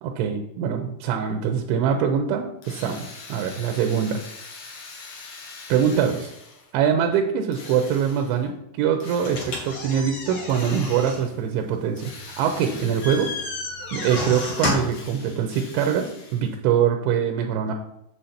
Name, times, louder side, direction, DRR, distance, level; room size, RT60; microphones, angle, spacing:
voice 1, 0.0-3.0 3.3-4.2 5.7-6.3 6.7-12.1 12.4-13.3 13.9-17.7, right 8 dB, 80° right, 4 dB, 2.9 m, -23 dB
Drill, 2.6-6.8 7.5-8.5 9.0-9.9 10.5-11.4 12.0-13.6 14.0-16.6, left 4 dB, 85° left, 1.6 m, -43 dB
sound 1, 9.2-15.1, left 2 dB, 45° left, 2.5 m, -31 dB
7.7 x 7.4 x 4.3 m, 0.83 s
omnidirectional pair, 5.7 m